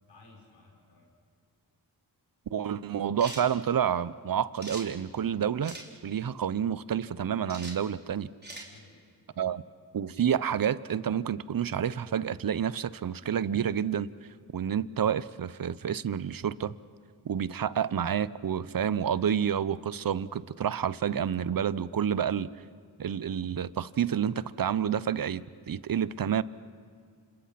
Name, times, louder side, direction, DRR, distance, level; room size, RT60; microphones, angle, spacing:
voice 1, 0.1-1.1 8.5-9.0 9.3-9.7, left 3 dB, 75° left, -1 dB, 6.7 m, -57 dB
voice 2, 2.5-5.8 6.0-8.3 9.4-9.6 9.9-14.1 14.5-16.7 17.2-22.5 23.0-26.4, right 8 dB, 55° right, 18 dB, 0.8 m, -29 dB
sound 1, 3.2-3.5 4.6-4.9 5.6-5.9 7.5-7.8 8.4-8.7, right 2 dB, 25° right, 4.1 m, -41 dB
29.0 x 27.0 x 5.9 m, 2.1 s
cardioid pair, 50°, 41 cm